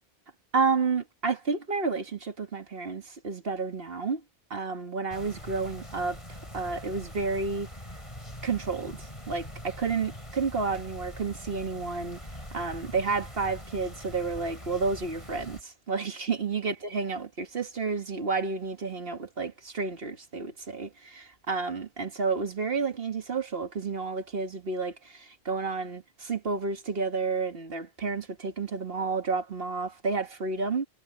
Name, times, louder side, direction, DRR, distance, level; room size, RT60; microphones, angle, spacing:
voice 1, 0.5-4.2 4.5-7.7 8.4-12.2 12.5-30.9, right 4 dB, 65° right, 1.9 m, -31 dB
sound 1, 5.1-15.6, equal, 30° left, 6.9 m, -43 dB
omnidirectional pair, 1.1 m